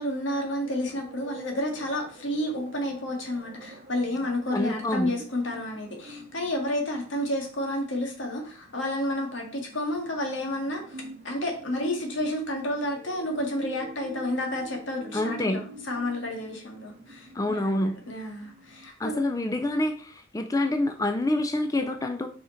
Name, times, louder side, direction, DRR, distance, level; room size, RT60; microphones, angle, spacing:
voice 1, 0.0-19.2, left 1 dB, 85° left, 1 dB, 1.8 m, -31 dB
sound 1, 0.6-18.9, right 2 dB, 40° right, 0.7 m, -47 dB
voice 2, 4.5-5.1 15.1-15.6 17.3-18.0 19.0-22.3, left 1 dB, 15° left, 7 dB, 0.4 m, -27 dB
5.3 x 4.9 x 4.3 m, 0.42 s
head